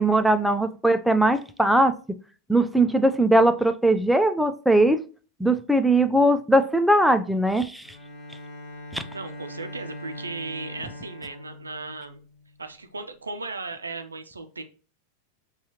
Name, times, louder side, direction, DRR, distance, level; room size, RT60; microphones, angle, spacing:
voice 1, 0.0-1.9 2.5-5.0 5.4-7.9 8.9-9.0, right 1 dB, ahead, 9 dB, 0.3 m, -20 dB
Bowed string instrument, 7.8-12.6, left 1 dB, 25° left, 1.2 m, -41 dB
voice 2, 9.1-12.2 12.6-14.6, right 3 dB, 75° right, 7 dB, 0.4 m, -36 dB
5.4 x 2.3 x 2.8 m, 0.37 s
figure-of-eight pair, 90°, 0 cm